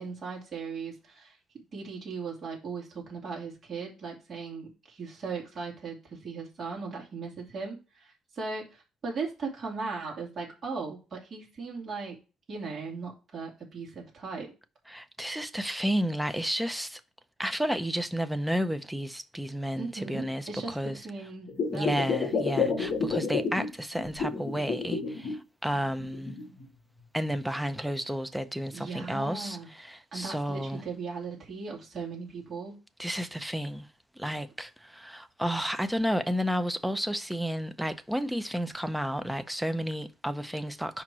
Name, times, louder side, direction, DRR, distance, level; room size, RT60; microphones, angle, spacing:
voice 1, 0.0-1.4 1.7-12.2 12.5-14.5 19.8-22.1 28.7-29.7 30.1-32.8, right 4 dB, 35° right, 2.6 m, -38 dB
voice 2, 14.9-17.0 17.4-21.0 21.7-26.4 27.1-30.8 33.0-33.9 34.2-41.0, equal, 5° right, 0.5 m, -31 dB
sound 1, 21.5-23.7 24.0-25.3 25.7-26.7 27.3-27.4, left 5 dB, 45° left, 2.0 m, -30 dB
5.0 x 4.5 x 6.0 m
cardioid pair, 150°, 0 cm